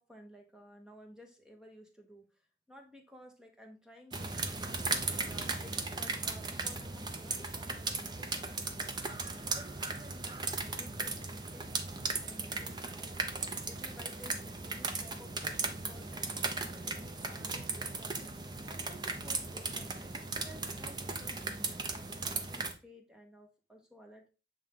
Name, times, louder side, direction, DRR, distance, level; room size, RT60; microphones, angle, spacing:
voice 1, 0.0-4.7 5.1-9.0 9.5-13.4 13.7-18.2 18.7-24.3, equal, 5° right, 2 dB, 1.1 m, -56 dB
sound 1, 4.1-22.7, right 3 dB, 25° right, 0.6 m, -37 dB
7.4 x 3.5 x 3.6 m, 0.33 s
head